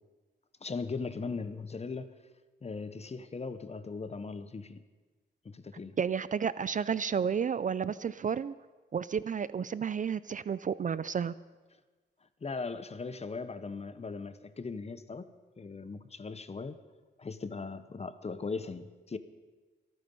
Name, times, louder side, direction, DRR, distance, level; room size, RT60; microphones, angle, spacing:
voice 1, 0.6-2.1 2.6-4.8 5.4-6.0 12.4-15.3 15.6-16.8 17.2-19.2, left 4 dB, 35° left, 12 dB, 0.9 m, -39 dB
voice 2, 6.0-8.5 8.9-11.3, right 7 dB, 40° right, 17 dB, 0.4 m, -31 dB
24.5 x 9.4 x 5.5 m, 1.3 s
wide cardioid pair, 120°, 20 cm